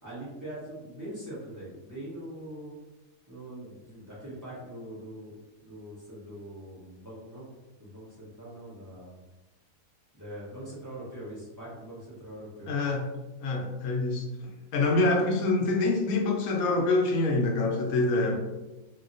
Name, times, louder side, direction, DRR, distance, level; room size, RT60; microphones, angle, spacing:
voice 1, 0.0-2.7 3.3-7.5 7.8-9.2 10.1-12.7 17.9-18.4, right 1 dB, 15° right, -9 dB, 0.9 m, -42 dB
voice 2, 12.6-13.1 13.4-18.4, left 2 dB, 90° left, 1 dB, 1.1 m, -26 dB
2.8 x 2.8 x 2.6 m, 1.1 s
omnidirectional pair, 1.5 m